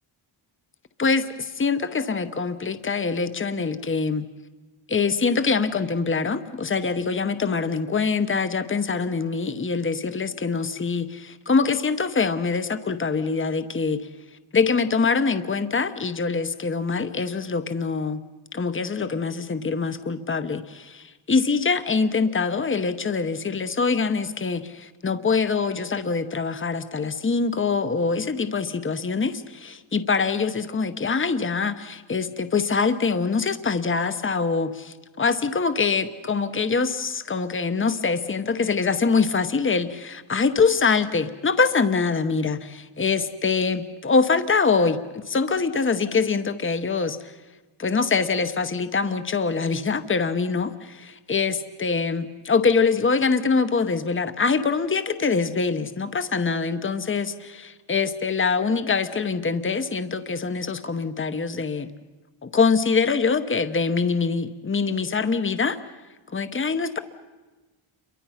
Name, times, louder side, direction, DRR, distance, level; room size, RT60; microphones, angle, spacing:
voice 1, 1.0-4.3 4.9-14.1 14.5-18.2 18.5-47.3 47.8-61.9 62.4-65.8 66.3-67.0, left 4 dB, 25° left, 11 dB, 0.9 m, -24 dB
28.5 x 23.5 x 5.7 m, 1.2 s
wide cardioid pair, 165°, 49 cm